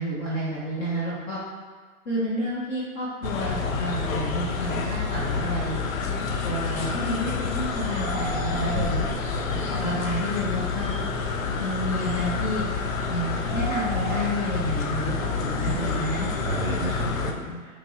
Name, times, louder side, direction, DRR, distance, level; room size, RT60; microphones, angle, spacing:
voice 1, 0.0-1.4 2.1-5.8 6.4-9.1 9.5-10.9 11.6-12.6 13.1-15.1 15.4-16.3, equal, 25° left, -8 dB, 0.6 m, -30 dB
sound 1, 3.2-17.3, left 5 dB, 70° left, 0.5 m, -28 dB
sound 2, 5.2-5.3 5.7-5.8 6.0-6.1 7.9-9.9 10.5-10.6 12.0-12.2 13.5-14.2, right 5 dB, 45° right, 0.6 m, -36 dB
voice 2, 8.7-9.2 9.5-9.6 16.4-17.8, right 2 dB, 15° right, -8 dB, 1.0 m, -32 dB
3.0 x 2.6 x 3.8 m, 1.5 s
figure-of-eight pair, 115°, 42 cm